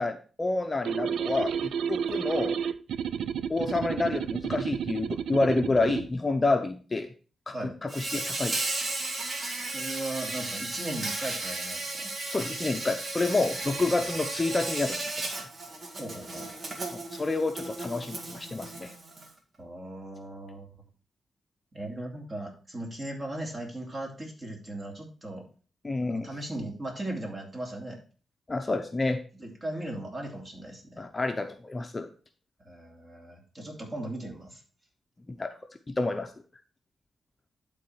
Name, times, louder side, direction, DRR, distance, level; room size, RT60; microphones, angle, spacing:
voice 1, 0.0-2.6 3.5-7.1 7.5-7.6 7.8-8.7 12.2-15.4 16.9-18.9 25.8-26.3 28.5-29.2 31.0-32.1 35.3-35.5 35.9-36.3, left 3 dB, 25° left, 6 dB, 0.7 m, -29 dB
sound 1, 0.9-6.1, right 8 dB, 90° right, 0.4 m, -31 dB
Insect, 7.9-19.3, right 2 dB, 50° right, 1.8 m, -35 dB
voice 2, 9.7-12.1 13.6-14.0 16.0-16.5 19.6-20.7 21.7-25.4 26.0-28.0 29.4-31.0 32.6-34.6, right 1 dB, 30° right, 0 dB, 2.8 m, -38 dB
11.5 x 4.0 x 4.5 m, 0.38 s
cardioid pair, 95°, 0 cm